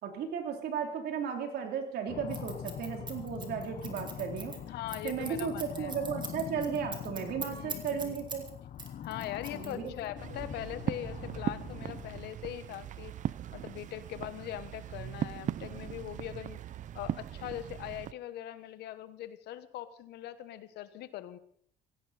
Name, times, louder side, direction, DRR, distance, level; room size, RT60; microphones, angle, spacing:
voice 1, 0.0-4.5 5.0-8.4 9.5-9.9, right 7 dB, 70° right, 4 dB, 3.3 m, -35 dB
sound 1, 2.1-12.3, left 10 dB, 50° left, 0.8 m, -43 dB
Scissors, 2.3-8.5 8.8-10.1, right 4 dB, 25° right, 2.7 m, -42 dB
voice 2, 4.6-5.9 7.5-8.2 9.0-13.2 13.5-16.6 16.9-21.4, left 12 dB, 80° left, 13 dB, 1.2 m, -41 dB
sound 2, 10.2-18.1, right 11 dB, 50° right, 0.5 m, -39 dB
17.5 x 15.5 x 4.2 m, 0.63 s
cardioid pair, 110°, 17 cm